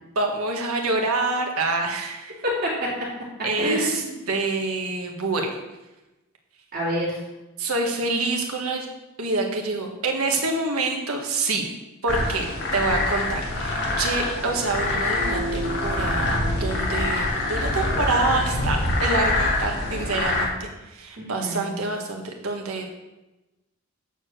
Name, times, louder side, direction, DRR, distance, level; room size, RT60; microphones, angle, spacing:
voice 1, 0.1-2.4 3.4-5.6 7.6-8.9 9.2-11.7 12.0-22.9, right 3 dB, 90° right, 2 dB, 1.5 m, -26 dB
voice 2, 2.4-3.1 3.6-4.2 6.7-7.2 21.2-21.7, equal, 45° right, -6 dB, 3.2 m, -27 dB
sound 1, 12.1-20.4, left 2 dB, 55° left, 1.8 m, -25 dB
8.7 x 4.9 x 6.3 m, 1.0 s
head